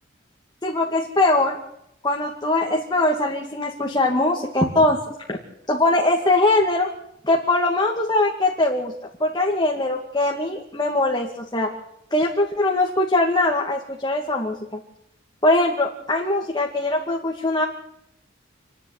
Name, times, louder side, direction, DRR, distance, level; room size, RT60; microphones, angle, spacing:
voice 1, 0.6-1.6 2.0-5.0 5.3-5.4 5.7-6.9 7.2-8.9 9.2-11.7 12.1-14.6 15.4-17.7, left 2 dB, 20° left, 0 dB, 2.3 m, -21 dB
28.0 x 10.5 x 9.6 m, 0.77 s
head